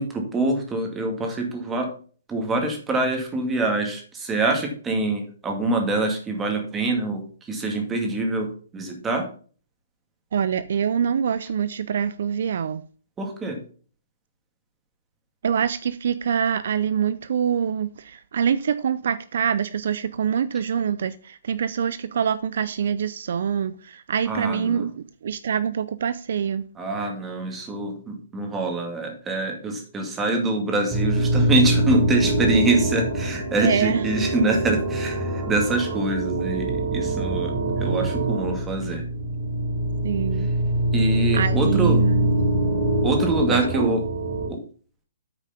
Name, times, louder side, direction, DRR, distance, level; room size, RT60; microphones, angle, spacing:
voice 1, 0.0-1.9 2.3-9.3 13.2-13.6 24.3-24.9 26.8-37.5 37.8-39.0 40.9-42.0 43.0-44.0 44.5-44.6, right 2 dB, 15° right, 2.2 m, -25 dB
voice 2, 10.3-12.8 15.4-26.6 33.6-34.1 40.0-40.5 41.3-42.3 43.5-43.9, right 7 dB, 65° right, 0.5 m, -25 dB
sound 1, 30.9-44.5, right 1 dB, 35° right, 4.0 m, -24 dB
8.9 x 4.9 x 5.7 m
hypercardioid pair, 150°, 0 cm